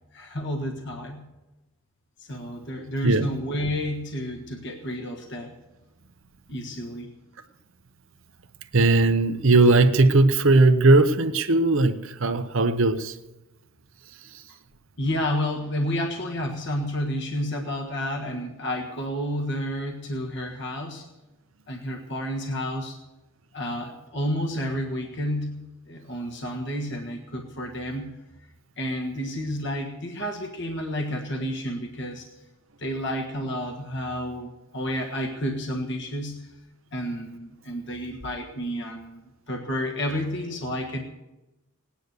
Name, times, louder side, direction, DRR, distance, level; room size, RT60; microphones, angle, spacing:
voice 1, 0.1-1.3 2.3-5.5 6.5-7.1 15.0-21.0 21.7-23.0 23.5-28.2 28.8-32.3 32.8-36.5 36.9-41.0, equal, 55° left, 1.6 m, -30 dB
voice 2, 8.7-13.2, right 2 dB, 65° right, 0.9 m, -18 dB
18.0 x 10.0 x 6.8 m
head